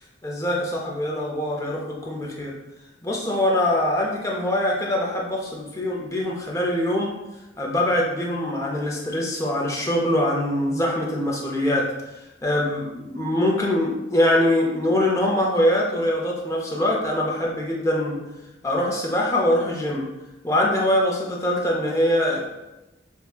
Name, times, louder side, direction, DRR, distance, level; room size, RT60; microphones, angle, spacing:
voice 1, 0.2-2.6 3.0-7.1 7.6-11.8 12.4-18.2 18.6-20.1 20.4-22.4, left 1 dB, 15° left, -2 dB, 0.5 m, -23 dB
3.3 x 2.7 x 2.3 m, 0.99 s
head